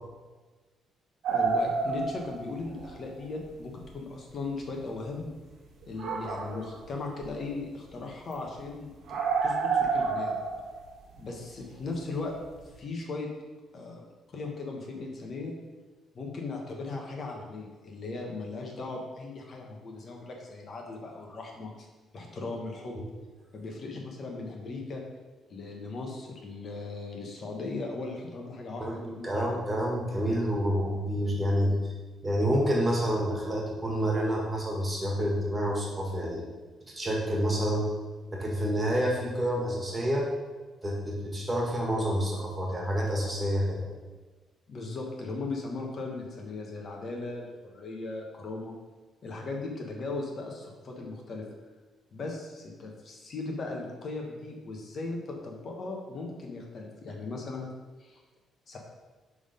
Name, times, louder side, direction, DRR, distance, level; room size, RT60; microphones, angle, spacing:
sound 1, 1.2-2.9 3.2-3.3 3.8-3.9 4.6-4.7 5.8-6.9 7.2-7.5 7.8-7.9 8.3-8.4 8.6-8.7 9.1-12.1 12.4-12.7, right 5 dB, 70° right, 1.1 m, -29 dB
voice 1, 1.3-5.3 5.9-8.9 9.4-10.4 11.2-12.3 12.8-13.3 13.7-14.0 14.3-15.5 16.1-21.9 22.1-23.0 23.5-25.0 25.5-29.6 44.7-48.7 49.2-51.5 52.1-57.7 58.0-58.2 58.7-58.8, left 3 dB, 50° left, 0 dB, 1.2 m, -38 dB
voice 2, 28.8-31.7 32.2-36.4 36.9-37.9 38.3-40.3 40.8-43.9, equal, 20° right, -2 dB, 1.7 m, -28 dB
6.2 x 3.7 x 5.2 m, 1.3 s
cardioid pair, 90°, 0 cm